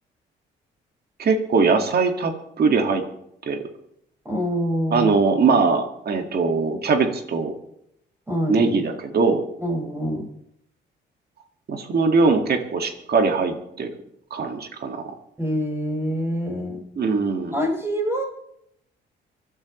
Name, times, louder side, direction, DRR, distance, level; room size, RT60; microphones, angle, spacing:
voice 1, 1.2-3.0 3.5-3.6 4.9-7.6 8.5-9.4 11.7-13.9 14.3-15.1 17.0-17.6, right 4 dB, 55° right, 5 dB, 2.1 m, -21 dB
voice 2, 4.2-5.6 8.3-8.6 9.6-10.3 15.4-16.8 17.5-18.2, equal, 15° right, 0 dB, 5.7 m, -26 dB
25.5 x 12.0 x 3.2 m, 0.76 s
cardioid pair, 90°, 20 cm